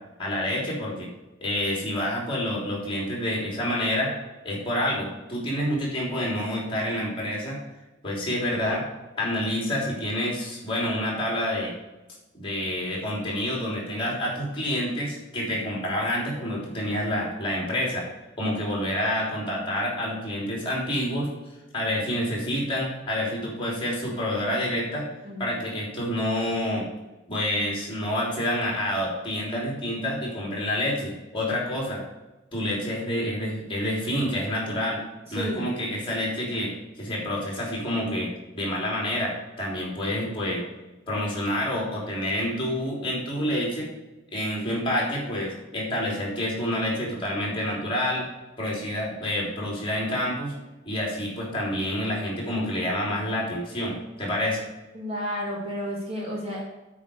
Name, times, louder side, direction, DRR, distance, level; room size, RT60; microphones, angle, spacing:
voice 1, 0.2-1.1 1.4-4.1 4.4-7.6 8.0-8.8 9.2-11.7 12.3-18.0 18.4-21.3 21.7-25.0 25.4-26.8 27.3-32.0 32.5-35.0 35.3-38.3 38.5-40.6 41.1-43.9 44.3-48.3 48.6-50.5 50.8-54.6, left 1 dB, 25° left, -3 dB, 3.3 m, -28 dB
voice 2, 25.2-25.6 35.3-35.7 54.9-56.6, equal, 30° right, -3 dB, 2.2 m, -32 dB
8.8 x 5.0 x 6.9 m, 1.1 s
head